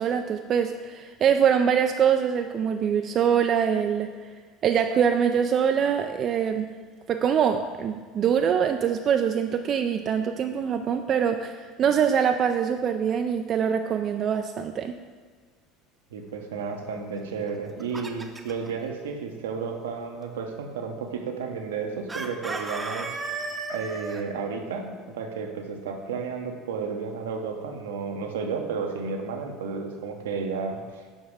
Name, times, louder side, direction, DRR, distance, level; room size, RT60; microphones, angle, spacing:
voice 1, 0.0-4.1 4.6-6.7 7.1-14.9, right 8 dB, 45° right, 6 dB, 0.3 m, -24 dB
voice 2, 16.1-23.1 23.7-31.0, right 5 dB, 75° right, 4 dB, 0.7 m, -32 dB
Chicken rooster, 17.5-18.7 22.1-24.2, right 3 dB, 15° right, 0.7 m, -34 dB
7.2 x 5.3 x 3.5 m, 1.5 s
hypercardioid pair, 70°, 0 cm